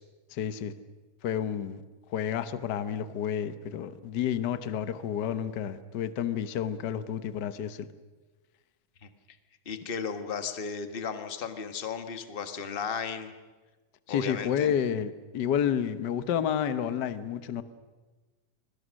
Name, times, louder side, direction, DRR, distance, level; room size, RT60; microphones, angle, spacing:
voice 1, 0.3-0.7 1.2-1.8 2.1-7.9 14.1-17.6, left 9 dB, 75° left, 0.9 m, -30 dB
voice 2, 9.6-13.3 14.1-14.7, left 6 dB, 35° left, 0.8 m, -35 dB
30.0 x 22.5 x 6.4 m
omnidirectional pair, 3.3 m